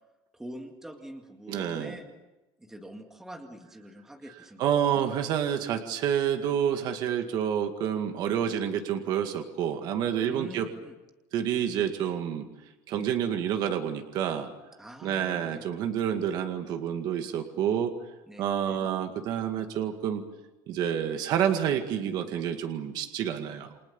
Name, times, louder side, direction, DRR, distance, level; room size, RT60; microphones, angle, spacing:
voice 1, 0.3-2.1 2.6-5.0 10.2-11.0 14.8-15.7 18.3-18.9, right 1 dB, 5° right, 3 dB, 2.0 m, -45 dB
voice 2, 1.5-2.0 4.6-10.7 11.3-12.5 12.9-14.5 15.0-17.9 18.4-20.2 20.7-23.8, right 9 dB, 40° right, 6 dB, 2.0 m, -28 dB
29.0 x 26.0 x 7.1 m, 1.1 s
cardioid pair, 175°, 10 cm